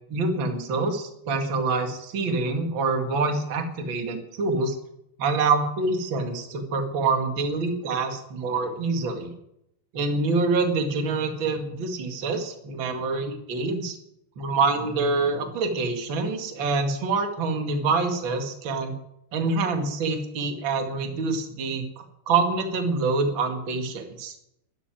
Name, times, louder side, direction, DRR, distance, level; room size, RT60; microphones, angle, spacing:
voice 1, 0.1-4.8 5.2-9.3 9.9-14.0 14.4-18.9 19.3-21.8 22.3-24.3, right 3 dB, 45° right, 5 dB, 1.6 m, -26 dB
12.5 x 11.0 x 9.2 m, 0.79 s
omnidirectional pair, 5.4 m